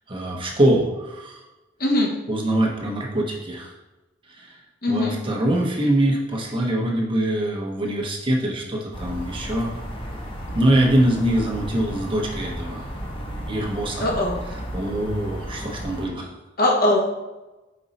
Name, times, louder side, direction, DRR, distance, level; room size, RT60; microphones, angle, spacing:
voice 1, 0.1-1.4 2.3-3.7 4.4-4.5 4.9-9.7 10.5-12.8 13.5-14.0 14.7-16.3, right 1 dB, 30° right, -1 dB, 1.0 m, -23 dB
voice 2, 4.8-5.2 14.0-14.4 16.6-17.1, left 1 dB, 55° left, -2 dB, 1.3 m, -20 dB
sound 1, 8.9-16.1, equal, 30° left, 1.2 m, -34 dB
5.2 x 4.6 x 4.1 m, 1.1 s
head